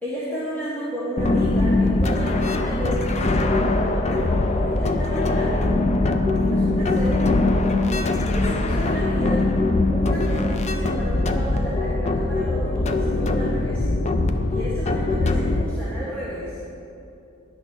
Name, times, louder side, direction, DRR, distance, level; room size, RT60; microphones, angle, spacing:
voice 1, 0.0-5.7 6.4-7.2 8.3-9.5 9.9-13.9 14.5-16.6, equal, 10° left, -10 dB, 1.8 m, -32 dB
sound 1, 1.2-15.6, left 2 dB, 30° left, 0.6 m, -22 dB
11.0 x 6.1 x 7.3 m, 2.8 s
head